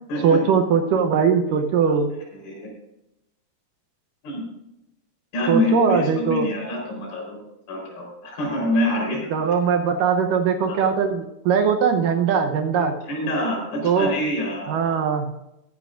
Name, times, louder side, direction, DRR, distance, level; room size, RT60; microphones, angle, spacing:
voice 1, 0.2-2.1 5.5-6.5 9.3-13.0 13.8-14.1 14.7-15.4, right 6 dB, 75° right, 5 dB, 2.0 m, -20 dB
voice 2, 2.3-2.7 4.2-4.5 5.3-7.4 7.7-9.2 10.7-10.8 13.0-15.0, left 1 dB, 65° left, -1 dB, 6.0 m, -26 dB
21.0 x 9.7 x 2.5 m, 0.87 s
omnidirectional pair, 4.7 m